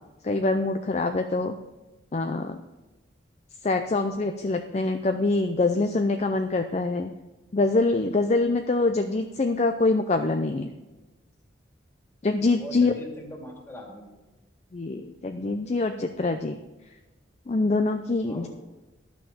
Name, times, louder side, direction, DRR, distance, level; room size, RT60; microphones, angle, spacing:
voice 1, 0.2-1.5 2.1-2.6 3.6-7.1 7.5-10.7 12.2-12.9 14.7-16.6 17.5-18.5, left 3 dB, 35° left, 6 dB, 0.5 m, -25 dB
voice 2, 12.6-14.0 18.3-18.5, equal, 15° left, -1 dB, 2.3 m, -40 dB
11.5 x 6.1 x 7.1 m, 1.1 s
head